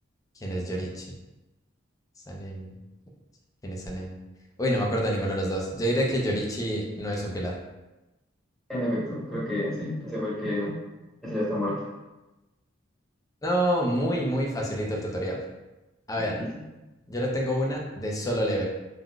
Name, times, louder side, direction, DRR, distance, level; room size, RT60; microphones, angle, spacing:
voice 1, 0.4-1.2 2.3-2.7 3.6-4.2 4.6-7.6 13.4-15.4 16.1-16.4 17.1-18.6, equal, 20° left, -1 dB, 0.4 m, -28 dB
voice 2, 8.7-10.7 11.2-11.7 16.3-16.4, left 1 dB, ahead, -8 dB, 0.9 m, -29 dB
3.6 x 2.4 x 2.3 m, 1.0 s
head